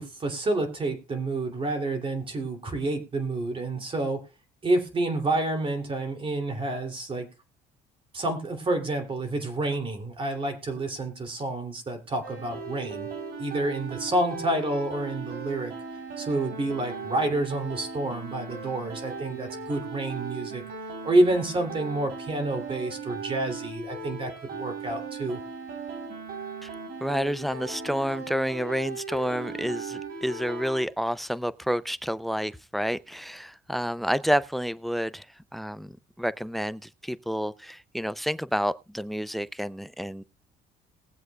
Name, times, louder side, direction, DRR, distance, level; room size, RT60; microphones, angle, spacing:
voice 1, 0.0-4.2 4.6-7.3 8.1-13.1 13.4-15.7 16.2-20.6 21.0-25.4, right 2 dB, 30° right, 2.8 m, -28 dB
sound 1, 12.2-30.9, right 4 dB, 65° right, 3.6 m, -38 dB
voice 2, 27.0-35.3 35.5-40.2, equal, ahead, 0.4 m, -29 dB
21.0 x 7.8 x 2.3 m
cardioid pair, 110°, 17 cm